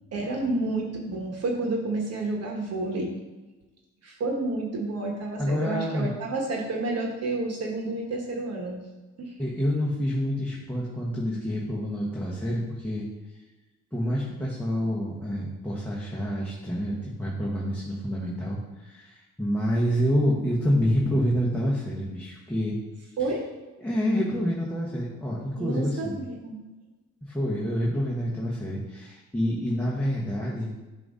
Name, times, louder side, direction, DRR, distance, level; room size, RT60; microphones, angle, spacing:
voice 1, 0.1-3.1 4.0-8.8 9.2-9.3 23.2-23.5 25.6-26.6, right 2 dB, 55° right, 0 dB, 1.1 m, -30 dB
voice 2, 5.4-6.1 9.4-13.1 13.9-22.8 23.8-26.2 27.3-30.7, equal, 5° left, -6 dB, 1.1 m, -27 dB
7.6 x 2.7 x 5.0 m, 1.2 s
cardioid pair, 90°, 30 cm